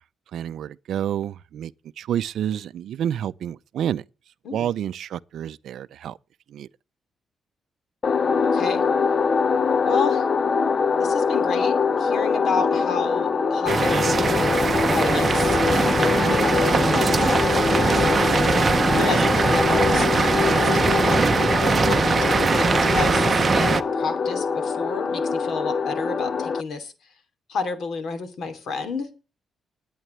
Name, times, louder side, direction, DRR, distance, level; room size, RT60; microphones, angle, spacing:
voice 1, 0.3-1.7 2.0-4.0 4.5-6.2 6.5-6.7 23.4-23.5, right 10 dB, 65° right, 0.5 m, -29 dB
sound 1, 8.0-26.6, left 5 dB, 30° left, 0.5 m, -23 dB
voice 2, 8.4-8.8 9.8-10.3 11.0-18.6 18.9-21.3 21.6-26.9 27.5-29.1, left 4 dB, 55° left, 2.8 m, -31 dB
sound 2, 13.7-23.8, right 5 dB, 25° right, 0.8 m, -21 dB
20.5 x 9.4 x 3.2 m
cardioid pair, 175°, 0 cm